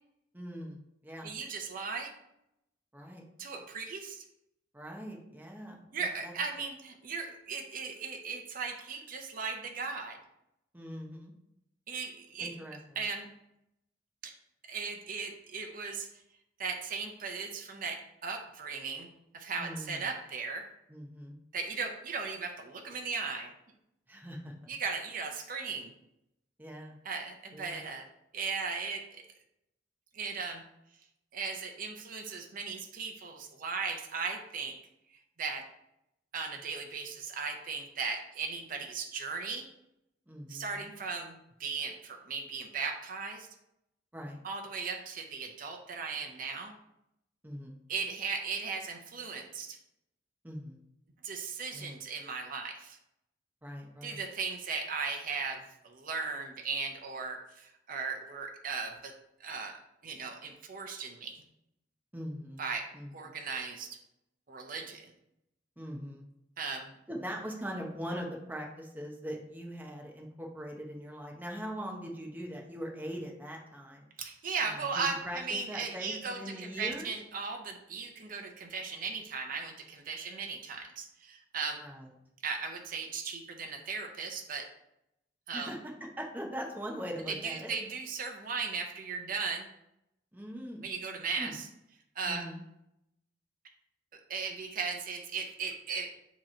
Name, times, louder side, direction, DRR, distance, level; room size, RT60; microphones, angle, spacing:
voice 1, 0.3-1.3 2.9-3.2 4.7-6.3 10.7-11.3 12.4-12.8 19.6-20.1 20.9-21.4 24.1-24.5 26.6-27.0 27.5-27.8 40.3-40.9 44.1-44.4 47.4-47.8 50.4-50.8 51.7-51.9 53.6-54.2 62.1-62.6 62.9-63.3 65.8-66.2 67.1-74.1 74.6-77.1 81.8-82.1 85.5-85.8 86.2-87.7 90.3-90.8 91.4-91.6 92.2-92.6, equal, 10° right, -1 dB, 0.8 m, -41 dB
voice 2, 1.2-2.1 3.4-4.2 5.9-10.2 11.9-12.5 13.0-13.3 14.2-14.3 14.7-16.1 16.6-19.1 19.3-20.7 21.5-23.5 24.7-25.9 27.0-28.0 28.3-29.2 30.1-30.6 31.3-34.8 35.4-35.7 36.3-39.7 40.5-43.5 44.4-46.7 47.9-49.8 51.2-53.0 54.0-59.1 59.4-61.4 62.6-64.0 64.5-65.1 66.6-66.9 74.2-81.8 82.4-84.7 85.5-85.7 87.3-89.7 90.8-91.7 92.2-92.5 94.1-96.1, right 5 dB, 50° right, 3 dB, 0.7 m, -37 dB
7.3 x 3.0 x 4.4 m, 0.83 s
head